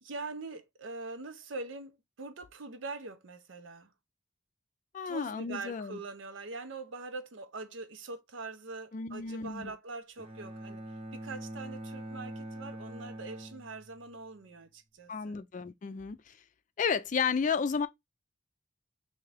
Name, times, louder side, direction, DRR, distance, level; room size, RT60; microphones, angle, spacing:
voice 1, 0.0-3.9 5.1-10.8 11.1-15.4, right 3 dB, 80° right, 0.7 m, -43 dB
voice 2, 4.9-6.0 8.9-9.7 15.1-16.3 16.8-17.9, left 6 dB, 40° left, 0.3 m, -32 dB
Bowed string instrument, 10.2-14.3, right 1 dB, 30° right, 0.7 m, -44 dB
3.6 x 2.8 x 3.3 m
head